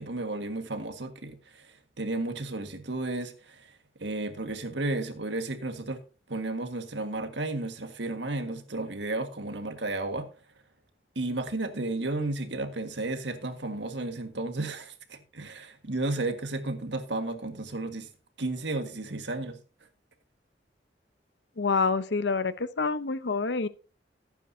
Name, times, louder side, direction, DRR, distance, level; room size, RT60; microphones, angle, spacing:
voice 1, 0.0-6.0 6.3-10.3 11.1-18.1 18.4-19.6, right 2 dB, 85° right, 1.7 m, -33 dB
voice 2, 21.6-23.7, left 4 dB, 75° left, 0.8 m, -27 dB
16.5 x 9.1 x 2.8 m
head